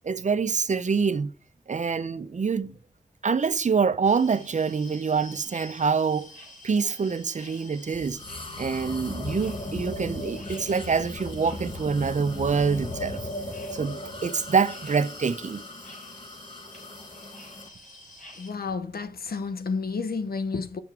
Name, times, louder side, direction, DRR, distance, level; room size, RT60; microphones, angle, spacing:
voice 1, 0.0-1.3 1.7-2.8 3.2-6.3 6.6-8.2 8.6-13.2 13.7-15.6, right 5 dB, 50° right, 0.6 m, -26 dB
sound 1, 4.0-18.5, left 1 dB, 60° left, 3.0 m, -48 dB
sound 2, 7.9-17.7, left 2 dB, 35° left, 0.9 m, -37 dB
voice 2, 18.4-20.8, left 4 dB, 80° left, 0.7 m, -31 dB
7.2 x 6.0 x 4.6 m
wide cardioid pair, 70°, 15 cm